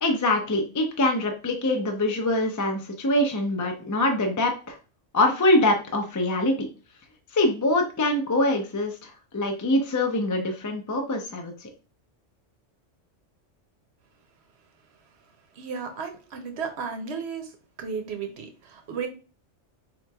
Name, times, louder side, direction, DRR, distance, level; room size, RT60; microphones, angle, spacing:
voice 1, 0.0-4.8 5.1-6.7 7.3-11.7, left 1 dB, 30° left, 0.3 m, -24 dB
voice 2, 15.6-17.5 17.8-19.1, right 6 dB, 65° right, 0.9 m, -34 dB
4.4 x 2.9 x 2.3 m
omnidirectional pair, 1.3 m